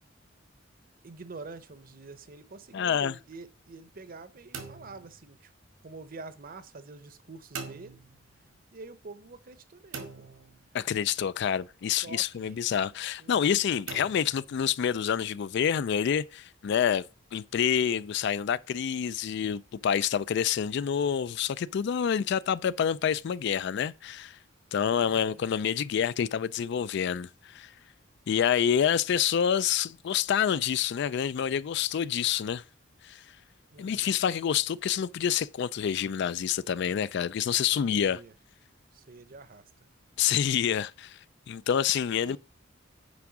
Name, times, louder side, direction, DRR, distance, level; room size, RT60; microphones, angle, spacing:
voice 1, 1.0-5.5 5.8-8.0 8.7-10.3 11.9-12.6 13.2-13.5 25.0-25.4 33.7-34.2 37.7-38.3 38.9-39.7 42.2-42.4, right 3 dB, 45° right, 0.8 m, -47 dB
voice 2, 2.7-3.1 10.7-17.0 17.3-24.4 24.7-27.7 28.3-32.6 33.0-33.2 33.8-38.2 40.2-41.2 41.5-42.4, left 8 dB, 60° left, 0.3 m, -27 dB
sound 1, 4.5-5.9 7.5-8.6 9.9-11.1 13.9-15.1, right 5 dB, 90° right, 1.9 m, -44 dB
9.6 x 3.6 x 5.9 m
head